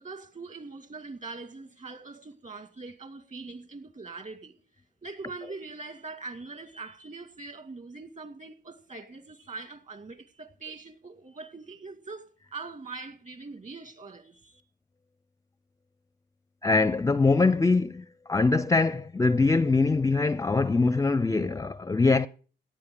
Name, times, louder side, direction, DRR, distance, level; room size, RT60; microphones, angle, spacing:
voice 1, 0.0-4.5 5.0-14.6, right 3 dB, 40° right, 2.3 m, -42 dB
voice 2, 16.6-18.0 18.3-22.3, left 3 dB, 15° left, 0.5 m, -23 dB
17.5 x 10.5 x 3.9 m
cardioid pair, 90°, 20 cm